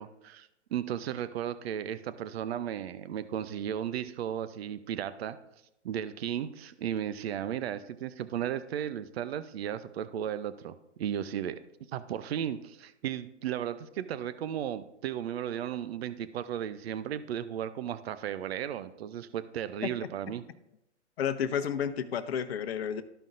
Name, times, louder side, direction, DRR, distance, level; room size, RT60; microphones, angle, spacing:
voice 1, 0.0-5.4 5.8-11.6 11.9-20.4, right 10 dB, 60° right, 13 dB, 0.6 m, -35 dB
voice 2, 21.2-23.0, left 8 dB, 60° left, 11 dB, 0.8 m, -31 dB
13.5 x 5.2 x 2.5 m, 0.85 s
hypercardioid pair, 135°, 36 cm